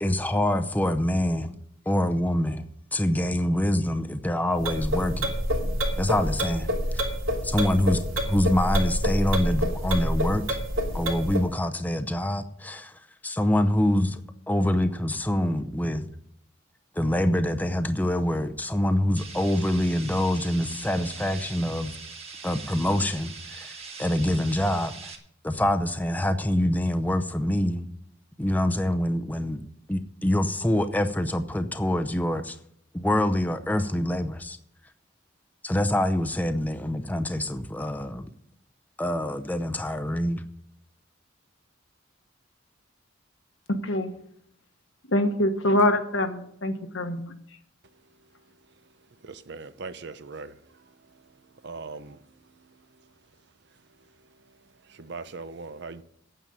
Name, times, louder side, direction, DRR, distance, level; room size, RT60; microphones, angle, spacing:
voice 1, 0.0-1.5 1.9-2.7 2.9-5.3 6.0-7.0 7.4-10.6 10.9-12.9 13.2-14.2 14.5-16.1 17.0-21.9 22.4-25.1 25.4-27.8 28.4-29.6 29.9-32.6 32.9-34.6 35.6-38.3 39.0-40.4, left 1 dB, 10° left, 0.7 m, -25 dB
sound 1, 4.6-11.5, equal, 85° right, 2.7 m, -27 dB
sound 2, 19.2-25.2, right 4 dB, 30° right, 1.6 m, -42 dB
voice 2, 43.7-44.1 45.1-47.3, left 1 dB, 75° left, 1.3 m, -24 dB
voice 3, 49.2-50.5 51.6-52.2 54.9-56.0, right 4 dB, 60° right, 0.7 m, -39 dB
9.2 x 8.1 x 8.7 m
head